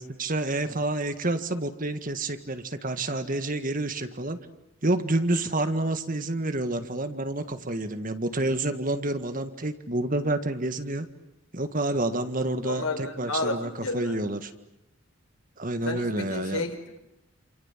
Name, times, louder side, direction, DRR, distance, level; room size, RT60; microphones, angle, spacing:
voice 1, 0.0-4.4 4.8-11.1 11.5-14.5 15.6-16.6, right 2 dB, 40° right, 9 dB, 1.8 m, -28 dB
voice 2, 12.5-14.2 15.8-17.0, left 2 dB, 90° left, 6 dB, 4.4 m, -32 dB
28.0 x 28.0 x 7.5 m, 0.89 s
head